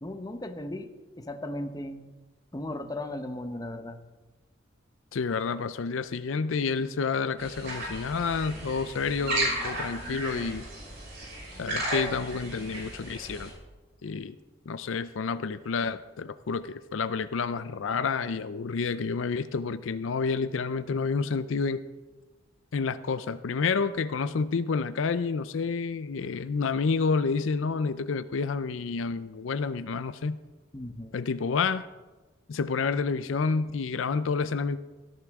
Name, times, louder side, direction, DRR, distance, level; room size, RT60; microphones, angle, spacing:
voice 1, 0.0-2.1 2.5-4.0 30.7-31.2, left 1 dB, 20° left, 7 dB, 0.9 m, -36 dB
voice 2, 5.1-10.6 11.6-13.5 14.0-14.4 14.7-21.8 22.7-30.4 31.1-31.8 32.5-34.8, left 5 dB, 75° left, 13 dB, 0.5 m, -29 dB
sound 1, 7.4-13.5, right 1 dB, 60° right, 5.9 m, -34 dB
18.0 x 13.5 x 3.6 m, 1.2 s
head